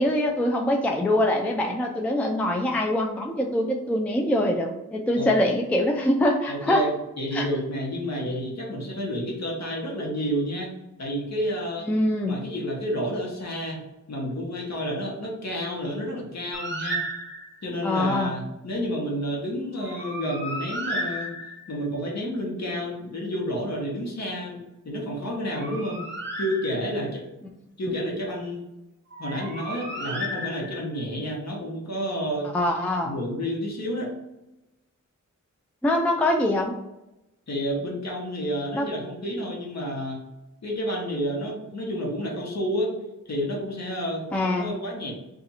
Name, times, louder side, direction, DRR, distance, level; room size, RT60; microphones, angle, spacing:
voice 1, 0.0-6.9 7.3-7.5 11.9-12.4 17.8-18.3 27.9-28.0 32.5-33.1 35.8-36.7 38.7-38.9 44.3-44.7, left 1 dB, 5° left, 1 dB, 0.3 m, -24 dB
voice 2, 6.5-10.7 11.0-11.9 12.3-13.8 14.1-17.0 17.6-21.3 21.7-26.0 26.4-27.2 27.8-28.6 29.2-32.5 33.0-34.1 37.5-40.2 40.6-42.9 43.3-45.1, equal, 55° left, -2 dB, 1.1 m, -30 dB
Bird, 16.5-17.7 19.8-21.8 25.3-27.1 29.1-31.0, equal, 35° right, 0.6 m, -34 dB
2.7 x 2.4 x 4.1 m, 0.94 s
wide cardioid pair, 110°, 31 cm